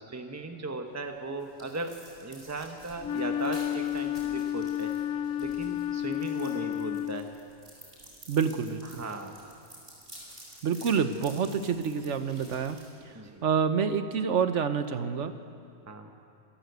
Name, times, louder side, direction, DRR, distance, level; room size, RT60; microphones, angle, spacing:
voice 1, 0.0-1.9 2.2-4.9 5.4-7.3 8.9-9.5 13.1-13.4 15.9-16.1, right 2 dB, 15° right, 4 dB, 1.1 m, -37 dB
sound 1, 0.9-13.5, right 1 dB, 45° right, 7.5 m, -52 dB
Wind instrument woodwind instrument, 3.0-7.5, left 11 dB, 85° left, 1.1 m, -31 dB
voice 2, 8.3-9.0 10.6-12.8 13.4-15.3, right 6 dB, 70° right, 10 dB, 1.3 m, -27 dB
27.0 x 11.5 x 8.2 m, 2.6 s
omnidirectional pair, 1.3 m